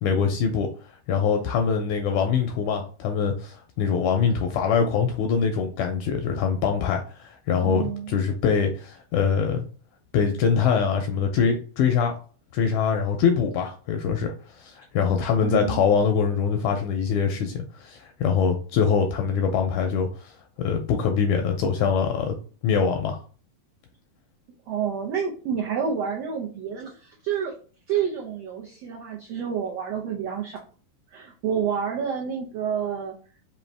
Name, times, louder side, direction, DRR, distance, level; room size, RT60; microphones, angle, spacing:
voice 1, 0.0-0.7 1.1-9.6 10.1-12.1 12.5-14.3 14.6-20.3 20.6-22.4 22.6-23.2, left 6 dB, 80° left, 4 dB, 1.8 m, -23 dB
voice 2, 7.6-8.1 12.7-12.8 15.4-15.9 24.7-27.5 27.9-30.6 31.1-33.1, right 7 dB, 85° right, -1 dB, 1.4 m, -29 dB
5.4 x 2.7 x 3.3 m, 0.39 s
omnidirectional pair, 3.9 m